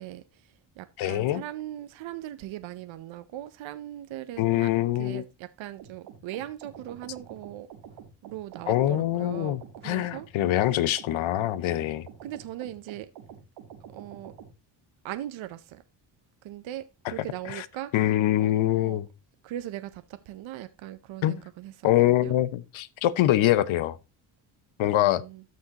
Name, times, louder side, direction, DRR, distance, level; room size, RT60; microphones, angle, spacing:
voice 1, 0.0-4.7 5.0-7.7 8.2-9.6 9.8-10.7 12.2-13.1 13.9-14.3 15.0-15.8 16.4-19.0 19.4-22.3 24.9-25.4, right 13 dB, 65° right, 0.8 m, -40 dB
voice 2, 1.0-1.4 4.4-5.2 8.7-12.1 17.0-17.1 17.4-17.7 17.9-19.1 21.2-21.4 21.8-24.0 24.8-25.2, left 14 dB, 70° left, 0.8 m, -24 dB
sound 1, 5.8-14.5, right 8 dB, 90° right, 1.6 m, -47 dB
13.0 x 6.4 x 2.9 m
supercardioid pair, 55°, 50 cm